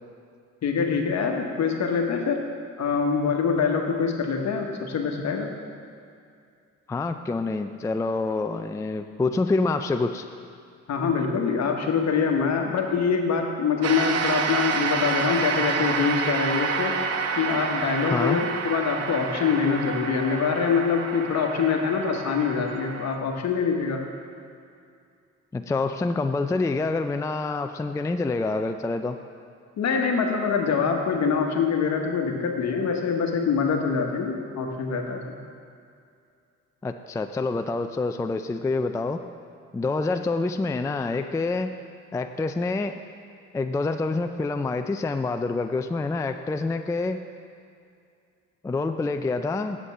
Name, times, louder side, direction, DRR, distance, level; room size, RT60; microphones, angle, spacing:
voice 1, 0.6-2.4 2.8-5.5 10.9-17.0 17.3-24.0 29.8-35.4, left 5 dB, 60° left, 2 dB, 1.2 m, -24 dB
voice 2, 6.9-10.2 18.1-18.4 25.5-29.2 36.8-39.2 39.7-41.7 42.1-43.0 43.5-47.2 48.6-49.8, left 3 dB, 10° left, 7 dB, 0.3 m, -27 dB
sound 1, 13.8-23.2, right 5 dB, 55° right, 0.7 m, -29 dB
8.2 x 5.2 x 7.4 m, 2.4 s
cardioid pair, 90°, 30 cm